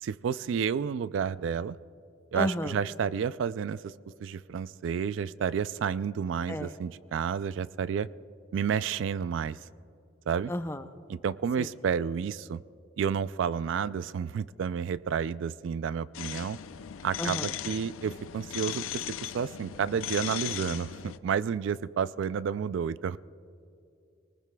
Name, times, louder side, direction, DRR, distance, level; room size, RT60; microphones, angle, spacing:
voice 1, 0.0-1.8 2.3-3.9 4.2-8.1 8.5-9.6 10.3-10.5 11.1-12.6 13.0-16.6 17.0-18.8 19.2-23.2, right 7 dB, 70° right, 16 dB, 0.3 m, -30 dB
voice 2, 2.3-2.7 6.5-6.7 10.5-10.8 11.6-11.7 17.2-17.5, left 1 dB, 10° left, 8 dB, 0.4 m, -32 dB
sound 1, 16.1-21.2, left 10 dB, 90° left, 0.4 m, -37 dB
23.5 x 19.5 x 2.3 m, 2.5 s
head